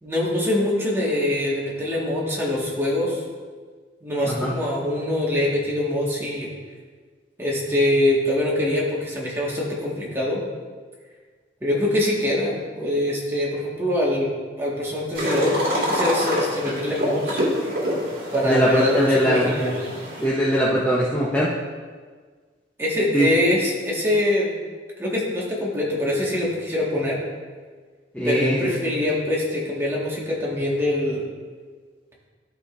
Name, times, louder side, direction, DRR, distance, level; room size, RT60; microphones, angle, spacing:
voice 1, 0.0-3.2 4.0-6.5 7.4-10.4 11.6-17.4 18.3-19.9 22.8-24.5 25.0-27.2 28.2-31.2, left 1 dB, 15° right, -5 dB, 1.5 m, -24 dB
sound 1, 15.1-20.2, equal, 55° right, 2.2 m, -26 dB
voice 2, 18.4-19.5 20.2-21.5 23.1-23.3 28.1-29.0, equal, 10° left, -6 dB, 0.7 m, -21 dB
12.5 x 4.9 x 2.5 m, 1.5 s
head